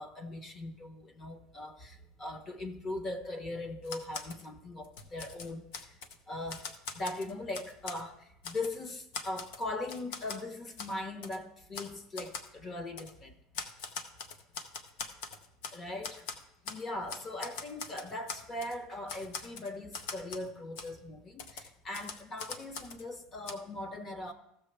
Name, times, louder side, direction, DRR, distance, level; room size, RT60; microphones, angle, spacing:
voice 1, 0.0-5.6 6.3-13.3 15.7-16.2 16.6-24.3, left 2 dB, 25° left, 1.0 m, -40 dB
Typewriter, 3.8-4.4 4.8-6.2 6.5-8.0 8.4-8.8 9.1-10.4 10.8-10.9 11.2-11.4 11.7-11.9 12.2-12.5 13.0-13.1 13.5-15.8 16.0-16.8 17.1-18.8 19.1-20.5 20.8-20.9 21.4-23.0 23.5-23.6, left 5 dB, 80° left, 0.9 m, -42 dB
15.0 x 6.8 x 3.3 m
cardioid pair, 150°, 0 cm